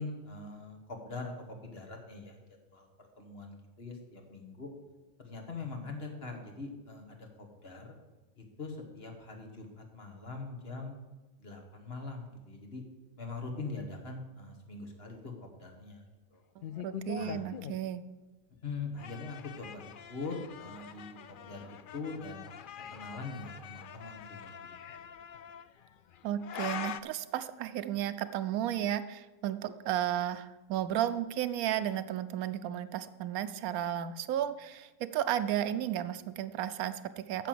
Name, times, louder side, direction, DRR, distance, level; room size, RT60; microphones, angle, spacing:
voice 1, 0.0-1.3 1.6-2.4 2.7-4.7 5.2-7.9 8.4-11.0 11.4-12.8 13.2-16.0 16.3-16.4 17.1-17.4 18.6-22.4 22.9-24.7, left 3 dB, 45° left, 3 dB, 1.7 m, -42 dB
sound 1, 16.6-17.8 18.7-27.0, left 8 dB, 85° left, 0.4 m, -44 dB
voice 2, 16.6-18.0 26.2-37.5, right 11 dB, 85° right, 13 dB, 1.1 m, -33 dB
9.2 x 7.0 x 7.6 m, 1.1 s
omnidirectional pair, 1.5 m